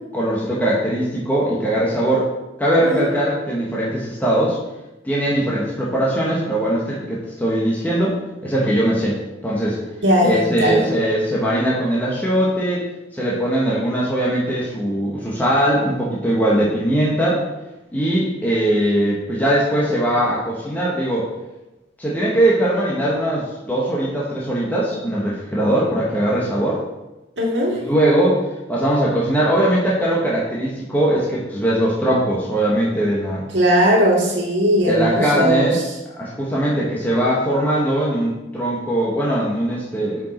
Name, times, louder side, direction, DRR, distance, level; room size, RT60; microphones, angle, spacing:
voice 1, 0.1-2.3 2.6-4.6 5.0-8.2 8.4-9.2 9.4-9.8 10.2-12.8 13.1-17.4 17.9-21.3 22.0-26.8 27.9-28.4 28.7-33.4 34.8-35.8 36.2-40.2, right 1 dB, 10° left, -6 dB, 1.1 m, -20 dB
voice 2, 10.0-10.9 27.4-27.8 33.5-35.9, equal, 75° right, -1 dB, 1.8 m, -18 dB
6.9 x 4.9 x 4.3 m, 1.0 s
head